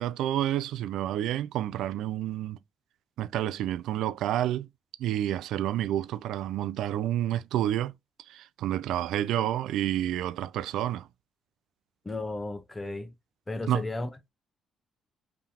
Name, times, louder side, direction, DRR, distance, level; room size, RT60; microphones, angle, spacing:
voice 1, 0.0-2.6 3.2-4.7 5.0-7.9 8.3-11.1 13.7-13.8, right 12 dB, 85° right, 0.3 m, -29 dB
voice 2, 12.0-13.1 13.5-14.3, left 2 dB, 15° left, 0.9 m, -34 dB
3.8 x 3.4 x 2.9 m
cardioid pair, 90°, 0 cm